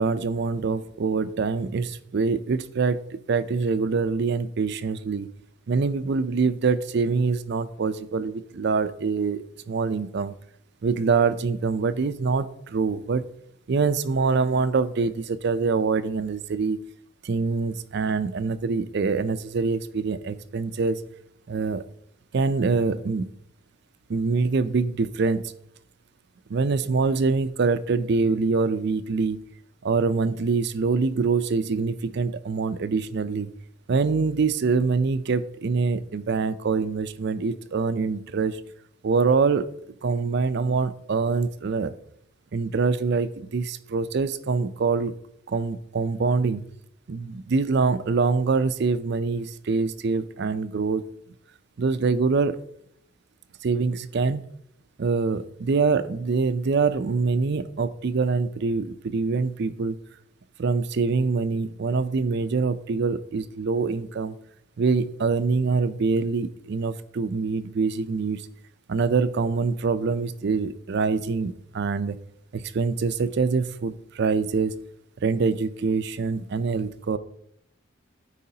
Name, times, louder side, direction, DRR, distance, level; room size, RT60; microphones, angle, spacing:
voice 1, 0.0-5.3 5.7-10.3 10.8-13.3 13.7-16.8 17.2-21.0 21.5-21.8 22.3-23.3 24.1-25.5 26.5-29.4 29.8-33.5 33.9-38.6 39.0-39.7 40.0-41.9 42.5-45.1 45.5-46.6 47.1-51.0 51.8-52.6 53.6-54.4 55.0-60.0 60.6-64.4 64.8-68.5 68.9-72.2 72.5-74.8 75.2-77.2, right 4 dB, 55° right, 14 dB, 0.4 m, -25 dB
12.5 x 4.9 x 2.8 m, 0.72 s
head